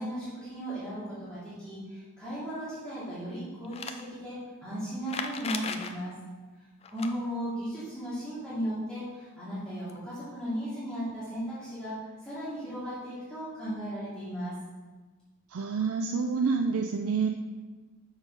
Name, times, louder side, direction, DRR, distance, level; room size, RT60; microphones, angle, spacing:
voice 1, 0.0-6.1 6.9-11.9 12.2-14.5, equal, 5° left, -13 dB, 2.4 m, -36 dB
sound 1, 3.6-4.0 5.0-5.9 6.8-7.1 9.6-9.7 9.9-10.0 11.1-11.2, left 5 dB, 30° left, 0.3 m, -36 dB
voice 2, 15.5-17.3, right 5 dB, 85° right, 4 dB, 0.4 m, -28 dB
6.5 x 4.8 x 5.2 m, 1.3 s
head